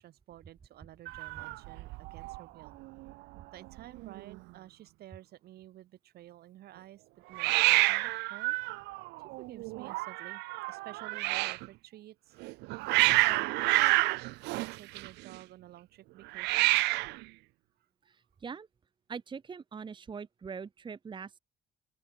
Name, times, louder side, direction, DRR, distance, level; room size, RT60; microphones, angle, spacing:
voice 1, 0.0-2.8 3.5-8.6 9.4-12.7 13.2-13.9 14.5-16.7, right 14 dB, 70° right, 3.0 m, -51 dB
Hiss, 1.1-2.4 2.7-3.1 3.4-3.5 3.7-4.4 7.3-11.7 12.4-15.4 16.3-17.2, right 22 dB, 85° right, 0.4 m, -29 dB
voice 2, 18.1-18.7 19.1-21.4, right 6 dB, 30° right, 1.1 m, -42 dB
open air
cardioid pair, 110°, 17 cm